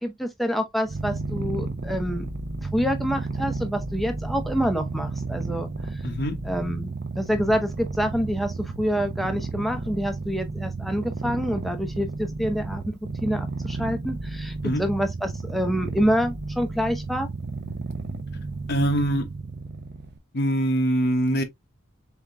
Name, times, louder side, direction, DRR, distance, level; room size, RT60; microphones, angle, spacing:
voice 1, 0.0-2.3 2.7-5.7 6.4-17.3, equal, ahead, 0.6 m, -27 dB
Purr, 0.9-20.2, right 3 dB, 50° right, 0.6 m, -32 dB
voice 2, 6.0-6.4 14.6-14.8 18.7-19.3 20.3-21.4, equal, 50° left, 0.9 m, -23 dB
4.7 x 3.5 x 2.4 m
head